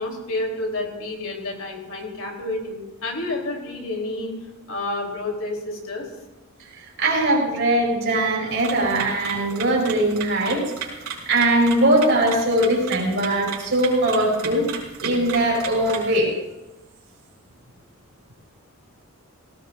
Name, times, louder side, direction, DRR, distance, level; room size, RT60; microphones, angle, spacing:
voice 1, 0.0-4.3 4.7-6.1, left 2 dB, 70° left, 0 dB, 3.4 m, -29 dB
voice 2, 6.8-11.0 11.2-14.7 15.0-16.3, right 1 dB, 60° right, -1 dB, 5.0 m, -21 dB
sound 1, 8.5-16.2, right 6 dB, 90° right, 4.3 m, -36 dB
18.5 x 18.0 x 2.6 m, 0.98 s
head